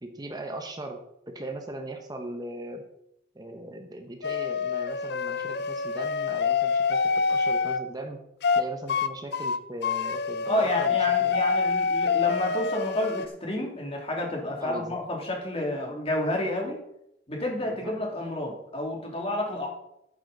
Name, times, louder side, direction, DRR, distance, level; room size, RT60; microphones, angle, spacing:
voice 1, 0.0-2.8 3.3-8.2 8.5-11.4 14.6-15.0 17.6-17.9, right 1 dB, 25° right, 4 dB, 1.1 m, -39 dB
sound 1, 4.2-7.8 8.4-8.6 8.9-9.1 9.3-13.3, left 5 dB, 65° left, 0.6 m, -26 dB
voice 2, 10.5-16.8 17.3-19.7, left 1 dB, 35° left, 0 dB, 2.7 m, -30 dB
11.5 x 9.0 x 4.0 m, 0.78 s
head